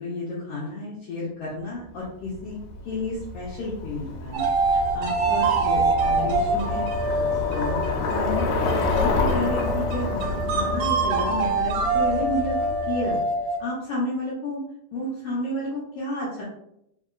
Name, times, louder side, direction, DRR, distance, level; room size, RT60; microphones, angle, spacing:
voice 1, 0.0-2.6 2.8-8.7 9.0-13.2 13.6-14.6 14.9-16.4, left 1 dB, 75° left, -6 dB, 1.4 m, -31 dB
Bicycle, 2.3-13.2, left 3 dB, 90° left, 2.2 m, -29 dB
sound 1, 4.3-13.8, right 3 dB, 85° right, 1.3 m, -25 dB
4.7 x 2.8 x 2.3 m, 0.77 s
omnidirectional pair, 3.5 m